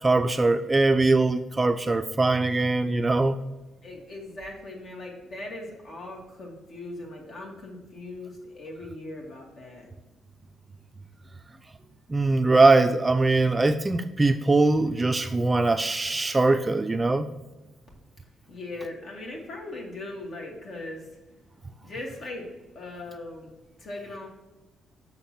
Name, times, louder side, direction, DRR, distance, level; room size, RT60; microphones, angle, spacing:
voice 1, 0.0-3.4 12.1-17.3, right 3 dB, 20° right, 0.4 m, -22 dB
voice 2, 3.8-9.9 18.5-21.1 21.8-22.5 22.7-24.3, left 2 dB, 55° left, 2.2 m, -39 dB
5.9 x 4.3 x 5.7 m
cardioid pair, 90°, 0 cm